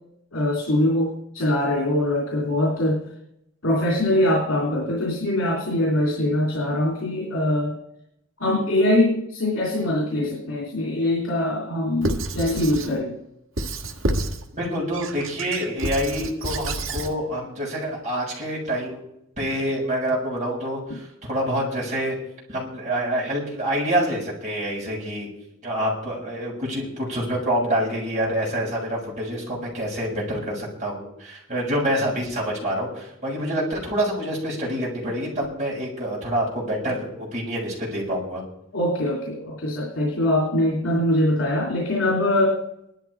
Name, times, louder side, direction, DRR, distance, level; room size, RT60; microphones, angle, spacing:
voice 1, 0.3-3.0 3.6-7.8 8.4-13.2 38.7-42.6, left 1 dB, 80° left, -2 dB, 3.3 m, -23 dB
Squeak / Writing, 12.0-12.9 13.6-14.4 14.9-17.1, right 1 dB, 90° right, 1.6 m, -28 dB
voice 2, 14.5-19.0 19.4-22.2 22.5-25.3 25.6-38.4, equal, 35° right, -4 dB, 6.8 m, -27 dB
17.5 x 12.5 x 4.8 m, 0.79 s
head